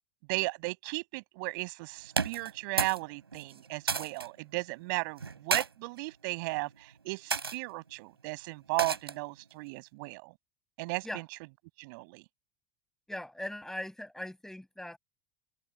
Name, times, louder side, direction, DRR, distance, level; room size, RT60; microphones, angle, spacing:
voice 1, 0.3-10.3 10.8-11.1 11.8-12.2, right 27 dB, 55° right, 7.2 m, -35 dB
sound 1, 2.1-3.0 3.3-4.3 5.2-5.7 6.4-6.7 7.3-7.6 8.8-9.3, right 5 dB, 80° right, 5.1 m, -32 dB
voice 2, 13.1-15.0, left 1 dB, 5° left, 7.2 m, -40 dB
figure-of-eight pair, 75°, 13 cm